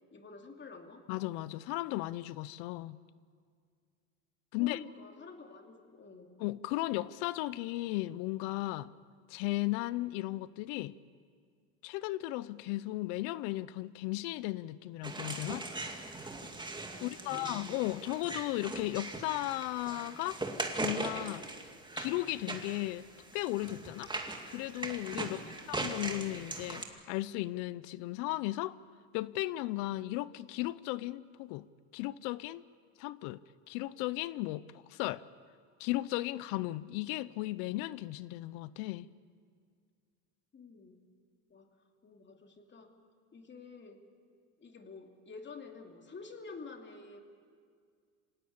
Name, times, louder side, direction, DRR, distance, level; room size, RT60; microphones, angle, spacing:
voice 1, 0.1-1.1 4.5-6.4 16.9-17.7 25.2-25.6 40.5-41.0 41.5-41.7 42.0-42.9 43.3-44.0 44.6-47.2, left 4 dB, 30° left, 4 dB, 2.8 m, -49 dB
voice 2, 1.1-3.0 4.5-4.8 6.4-8.9 9.3-10.9 11.8-15.6 17.0-20.4 20.8-21.4 22.0-23.1 23.3-24.1 24.5-25.4 25.7-28.8 29.1-31.7 31.9-32.6 33.0-33.4 33.7-34.6 34.9-35.2 35.8-39.1, left 18 dB, 80° left, 19 dB, 0.7 m, -35 dB
sound 1, 15.0-26.8, right 2 dB, 10° right, 2.3 m, -40 dB
26.0 x 18.0 x 8.7 m, 2.1 s
supercardioid pair, 110°, 37 cm